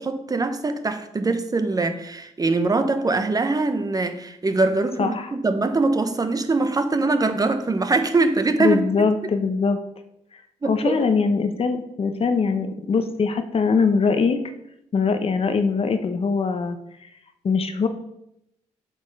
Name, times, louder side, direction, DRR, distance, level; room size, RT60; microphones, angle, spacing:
voice 1, 0.0-9.3 10.6-11.0, right 3 dB, 30° right, 0.8 m, -23 dB
voice 2, 5.0-5.3 8.6-9.8 10.6-14.4 14.9-16.8 17.4-17.9, left 5 dB, 45° left, 0.9 m, -22 dB
7.4 x 5.3 x 5.4 m
cardioid pair, 75°, 13 cm